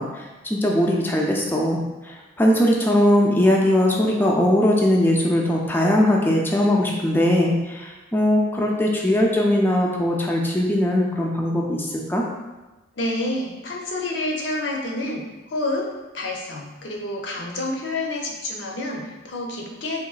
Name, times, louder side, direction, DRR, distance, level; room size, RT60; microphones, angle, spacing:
voice 1, 0.0-12.2, left 1 dB, 10° left, -1 dB, 0.3 m, -20 dB
voice 2, 13.0-15.8 16.1-20.0, left 2 dB, 60° left, 0 dB, 0.5 m, -28 dB
3.8 x 2.9 x 2.4 m, 1.1 s
head